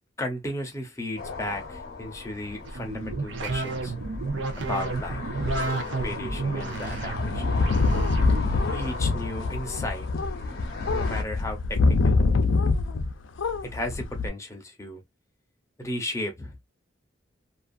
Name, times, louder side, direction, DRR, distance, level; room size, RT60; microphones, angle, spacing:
voice 1, 0.2-3.9 4.6-5.2 6.0-7.4 8.7-10.1 10.9-12.2 13.6-15.0 15.8-16.5, left 1 dB, 15° left, 0.7 m, -34 dB
sound 1, 1.2-11.2, left 3 dB, 55° left, 0.8 m, -36 dB
sound 2, 2.6-9.0, right 3 dB, 65° right, 0.7 m, -32 dB
sound 3, 7.2-13.1 13.4-14.3, left 3 dB, 85° left, 0.5 m, -24 dB
2.6 x 2.4 x 2.5 m
head